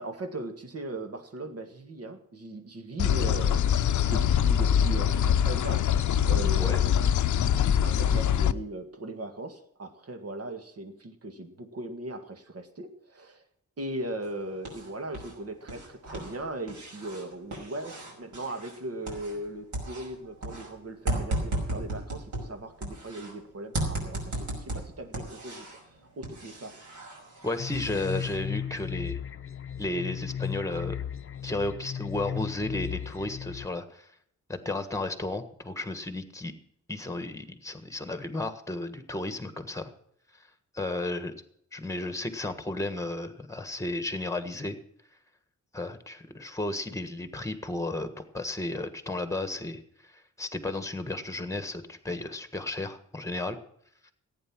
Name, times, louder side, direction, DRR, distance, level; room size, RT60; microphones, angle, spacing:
voice 1, 0.0-13.4 13.8-25.8 26.2-26.8, right 2 dB, 55° right, 6 dB, 2.0 m, -39 dB
sound 1, 3.0-8.5, left 9 dB, 75° left, 0.7 m, -23 dB
sound 2, 14.2-15.4 15.6-19.5 19.7-23.3 23.7-25.9 26.2-28.4, right 2 dB, 70° right, 5.8 m, -36 dB
voice 2, 27.4-29.2 29.8-31.0 31.4-34.1 34.5-36.5 36.9-39.9 40.3-40.5 40.7-41.3 41.7-44.8 45.7-53.6 54.0-54.1, left 2 dB, 10° left, 10 dB, 1.5 m, -33 dB
sound 3, 27.6-33.7, left 8 dB, 45° left, 0.7 m, -35 dB
15.5 x 9.2 x 6.1 m, 0.68 s
wide cardioid pair, 150°, 30 cm